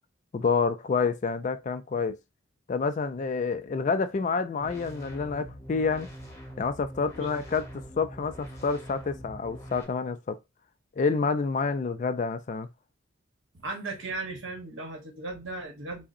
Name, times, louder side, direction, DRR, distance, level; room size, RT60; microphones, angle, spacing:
voice 1, 0.3-2.2 2.7-6.1 6.6-7.6 8.0-10.4 11.0-12.7, left 5 dB, 35° left, 0.3 m, -28 dB
sound 1, 4.6-9.8, equal, 15° left, 0.9 m, -44 dB
voice 2, 13.5-16.1, right 2 dB, 60° right, 1.3 m, -36 dB
4.8 x 2.1 x 2.6 m
head